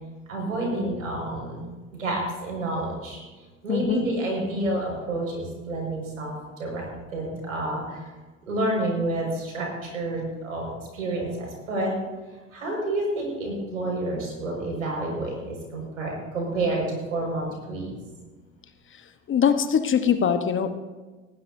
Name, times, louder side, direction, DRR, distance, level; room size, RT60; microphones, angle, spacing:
voice 1, 0.3-1.6 2.0-3.2 3.6-6.8 7.1-8.0 8.5-11.9 12.5-18.1, right 2 dB, 90° right, -1 dB, 5.7 m, -29 dB
voice 2, 3.7-4.1 19.3-20.7, left 7 dB, 30° left, 9 dB, 1.1 m, -22 dB
19.5 x 15.5 x 2.7 m, 1.3 s
hypercardioid pair, 80°, 39 cm